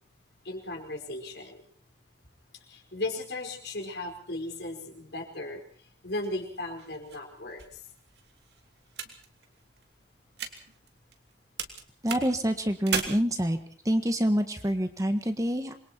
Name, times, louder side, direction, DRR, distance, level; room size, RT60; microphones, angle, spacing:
voice 1, 0.4-1.6 2.7-5.6 6.0-7.8, left 2 dB, 70° left, 3 dB, 5.1 m, -36 dB
sound 1, 6.2-11.3 11.6-13.0, right 6 dB, 70° right, 3.0 m, -38 dB
voice 2, 12.0-13.6 13.8-15.7, equal, 20° right, 8 dB, 1.6 m, -26 dB
27.5 x 22.5 x 4.5 m, 0.43 s
head